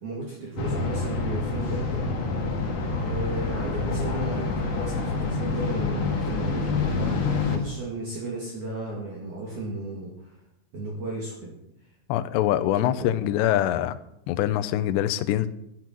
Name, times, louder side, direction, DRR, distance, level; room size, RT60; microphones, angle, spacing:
voice 1, 0.0-2.1 3.0-7.2 7.5-10.3 10.7-11.5 12.8-13.1, right 2 dB, 50° right, -3 dB, 3.3 m, -34 dB
sound 1, 0.6-7.6, left 4 dB, 50° left, 2.1 m, -27 dB
voice 2, 12.1-14.0 14.3-15.5, left 12 dB, 80° left, 11 dB, 2.8 m, -24 dB
12.0 x 11.0 x 6.0 m, 0.79 s
omnidirectional pair, 5.3 m